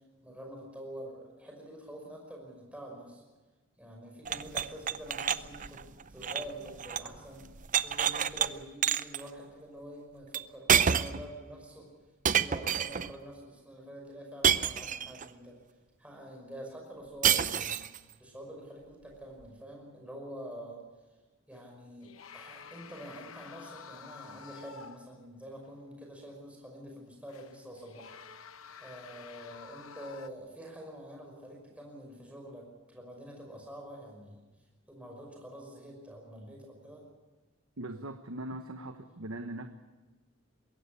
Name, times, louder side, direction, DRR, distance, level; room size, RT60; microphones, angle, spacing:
voice 1, 0.2-3.2 3.8-7.4 7.8-11.9 12.3-15.6 16.0-17.8 18.2-20.8 21.5-28.1 28.8-34.4 34.9-37.0, equal, 5° right, 0 dB, 5.5 m, -46 dB
sound 1, 4.2-7.2 7.4-8.5 8.8-9.2 10.3-10.4 10.7-11.3 12.2-13.1 14.4-15.3 17.2-18.0, right 8 dB, 40° right, 0.6 m, -28 dB
sound 2, 21.5-21.6 22.0-25.3 25.6-25.7 27.3-30.3, left 6 dB, 85° left, 0.9 m, -50 dB
voice 2, 37.8-39.7, right 1 dB, 85° right, 6 dB, 1.2 m, -40 dB
22.5 x 16.5 x 8.5 m, 1.2 s
head